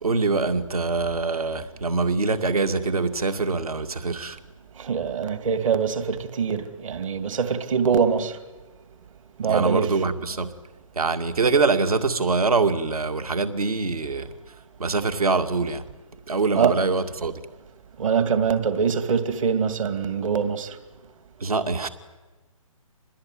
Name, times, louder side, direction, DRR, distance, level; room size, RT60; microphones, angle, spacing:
voice 1, 0.0-4.4 9.4-10.5 11.0-14.3 14.8-15.8 16.3-17.3 21.4-21.9, right 4 dB, 80° right, 2.3 m, -24 dB
voice 2, 4.8-8.4 9.4-9.9 16.5-16.8 18.0-20.8, right 6 dB, 60° right, 2.7 m, -24 dB
26.0 x 20.5 x 9.4 m
figure-of-eight pair, 145°, 19 cm